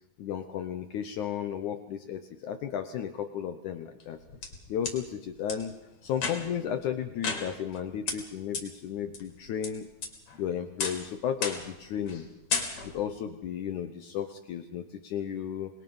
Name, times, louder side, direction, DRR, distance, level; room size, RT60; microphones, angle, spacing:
voice 1, 0.2-4.2 4.7-5.8 6.0-9.9 10.4-12.3 12.8-15.7, left 9 dB, 70° left, 8 dB, 2.0 m, -34 dB
sound 1, 4.0-5.0 5.5-5.6 6.1-6.6 7.2-7.8 8.1-8.2 8.5-8.6 9.1-9.7 10.0-10.4 10.8-11.1 11.4-11.8 12.1-12.2 12.5-13.1, left 5 dB, 50° left, 3.9 m, -33 dB
26.5 x 21.0 x 5.5 m, 0.92 s
omnidirectional pair, 4.4 m